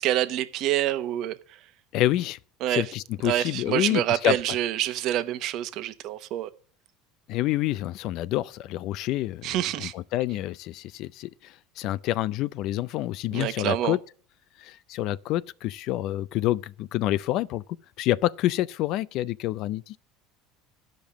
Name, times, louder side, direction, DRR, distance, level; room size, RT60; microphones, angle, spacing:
voice 1, 0.0-1.4 2.6-2.8 3.2-6.5 9.4-9.9 13.3-14.0, right 13 dB, 60° right, 1.0 m, -27 dB
voice 2, 1.9-2.4 2.7-4.4 7.3-14.0 14.6-17.6 18.0-20.0, left 15 dB, 60° left, 0.4 m, -28 dB
11.5 x 5.2 x 7.3 m
supercardioid pair, 100°, 0 cm